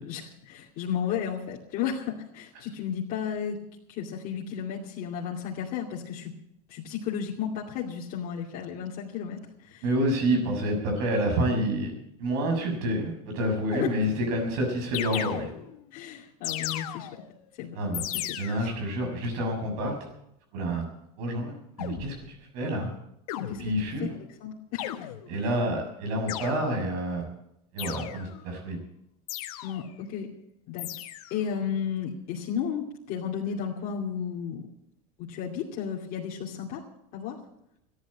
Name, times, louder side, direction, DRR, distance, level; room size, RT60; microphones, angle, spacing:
voice 1, 0.0-3.6 3.9-6.3 6.7-9.8 10.3-10.4 13.8-13.9 15.9-17.2 17.6-18.0 18.3-18.7 23.3-23.7 24.0-25.1 29.6-30.3 30.7-30.9 31.3-34.6 35.2-36.8 37.1-37.4, left 8 dB, 55° left, -4 dB, 2.6 m, -33 dB
voice 2, 9.8-11.9 12.2-15.5 17.7-20.0 20.5-20.9 21.2-22.9 23.6-24.1 25.3-27.3 27.7-28.8, right 1 dB, 70° right, 3 dB, 6.6 m, -28 dB
sound 1, 13.7-14.4 14.9-15.9 16.4-17.4 17.9-18.8 21.8-22.3 23.3-24.0 24.8-25.5 26.3-27.0 27.8-28.5 29.3-30.0 30.8-31.5, left 13 dB, 85° left, 1.3 m, -36 dB
14.0 x 10.5 x 8.6 m, 0.79 s
supercardioid pair, 120°, 19 cm